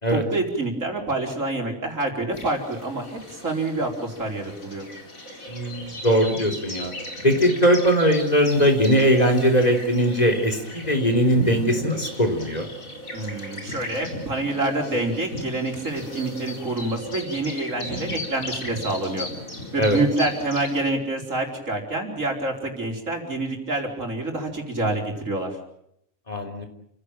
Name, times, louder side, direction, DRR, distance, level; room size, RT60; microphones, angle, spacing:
voice 1, 0.1-4.9 13.1-19.3 19.7-25.6, right 2 dB, 70° right, 2 dB, 5.1 m, -27 dB
sound 1, 2.3-20.8, left 1 dB, 85° left, 4.8 m, -36 dB
voice 2, 5.5-6.9 7.2-12.7 19.8-20.0 26.3-26.7, equal, 30° left, 4 dB, 3.6 m, -20 dB
29.5 x 16.5 x 9.1 m, 0.74 s
omnidirectional pair, 1.4 m